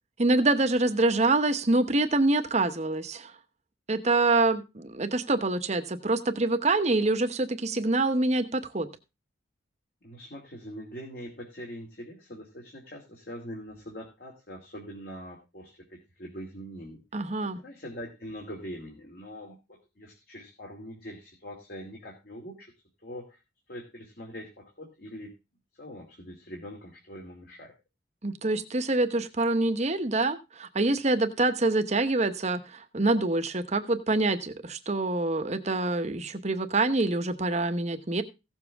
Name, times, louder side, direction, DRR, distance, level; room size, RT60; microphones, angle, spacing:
voice 1, 0.2-3.3 3.9-8.9 17.1-17.6 28.2-38.2, right 2 dB, 35° right, 9 dB, 1.0 m, -26 dB
voice 2, 10.0-22.7 23.0-23.4 23.7-25.3 25.8-27.7, equal, 50° left, 0 dB, 2.5 m, -43 dB
16.0 x 7.2 x 3.5 m, 0.26 s
head